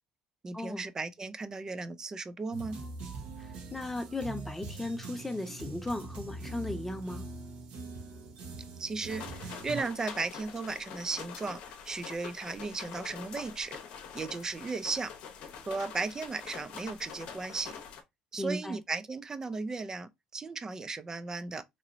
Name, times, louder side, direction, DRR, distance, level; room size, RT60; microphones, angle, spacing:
voice 1, 0.4-2.8 8.8-13.8 14.1-15.1 15.7-17.7 18.3-21.6, right 4 dB, 25° right, 0.4 m, -36 dB
sound 1, 2.5-9.8, right 3 dB, 70° right, 1.1 m, -43 dB
voice 2, 3.7-7.2 18.4-18.8, left 1 dB, 10° left, 0.9 m, -36 dB
sound 2, 9.1-18.0, left 7 dB, 70° left, 0.8 m, -45 dB
3.0 x 2.8 x 2.6 m
supercardioid pair, 75°, 2 cm